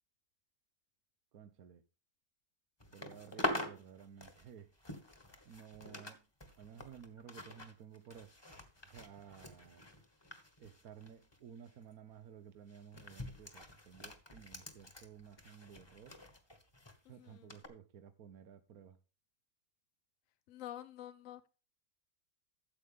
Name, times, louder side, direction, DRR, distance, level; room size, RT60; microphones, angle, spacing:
voice 1, 1.3-1.8 2.8-4.7 5.4-6.3 6.6-8.3 8.8-9.9 10.6-16.2 17.1-19.0, right 8 dB, 80° right, 1.3 m, -54 dB
sound 1, 2.8-6.1 6.4-11.4 11.7-11.9 12.7-17.0 17.5-17.7, left 1 dB, 20° left, 1.5 m, -45 dB
voice 2, 17.0-17.6 20.5-21.5, left 12 dB, 65° left, 1.1 m, -49 dB
13.5 x 8.1 x 3.6 m
omnidirectional pair, 1.5 m